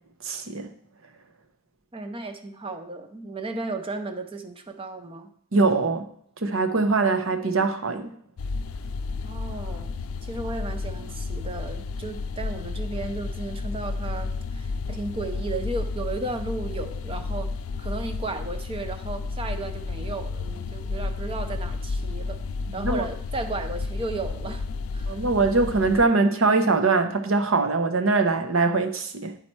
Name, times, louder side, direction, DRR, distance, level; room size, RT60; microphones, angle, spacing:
voice 1, 0.2-0.7 5.5-6.1 6.4-8.1 22.7-23.0 25.1-29.4, right 3 dB, 65° right, 7 dB, 0.8 m, -22 dB
voice 2, 1.9-5.3 9.2-9.9 10.2-17.5 17.8-22.4 22.7-24.6 24.9-25.2, right 2 dB, 25° right, 7 dB, 0.7 m, -34 dB
sound 1, 8.4-26.0, left 3 dB, 75° left, 0.4 m, -32 dB
9.3 x 4.3 x 4.6 m, 0.63 s
head